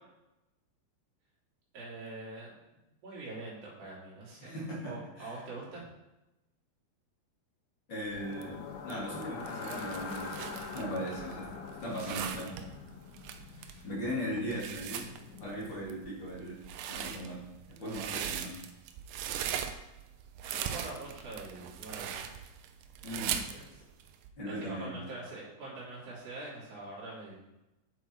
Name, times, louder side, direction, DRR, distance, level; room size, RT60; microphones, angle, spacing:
voice 1, 1.7-2.5 3.0-4.5 4.8-5.8 13.4-13.8 20.4-22.2 23.5-23.8 24.5-27.4, right 2 dB, 40° right, -7 dB, 3.7 m, -44 dB
voice 2, 4.4-5.4 7.9-10.4 10.7-11.4 11.8-12.5 13.8-15.1 15.4-16.6 16.9-18.5 23.0-23.4 24.4-25.0, equal, 30° left, -6 dB, 2.7 m, -38 dB
sound 1, 8.0-24.3, right 9 dB, 80° right, 2.0 m, -40 dB
sound 2, 8.1-16.2, left 5 dB, 70° left, 2.7 m, -44 dB
7.7 x 7.6 x 4.6 m, 0.94 s
omnidirectional pair, 4.8 m